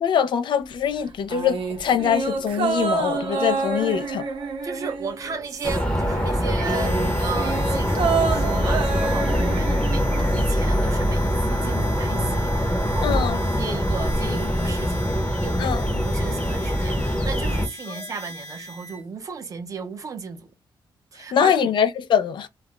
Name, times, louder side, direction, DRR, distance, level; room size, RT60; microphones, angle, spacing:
voice 1, 0.0-4.2 13.0-13.4 15.6-15.8 17.9-18.0 21.3-22.5, left 8 dB, 65° left, 0.4 m, -23 dB
sound 1, 1.3-6.1 6.3-10.6 10.9-11.0, right 4 dB, 85° right, 0.7 m, -28 dB
voice 2, 4.6-20.5 21.1-21.7, right 5 dB, 40° right, 0.6 m, -35 dB
sound 2, 5.6-17.7, equal, 15° left, 0.8 m, -23 dB
Harmonica, 6.6-19.0, left 1 dB, 40° left, 0.9 m, -40 dB
2.3 x 2.1 x 3.4 m
wide cardioid pair, 175°, 9 cm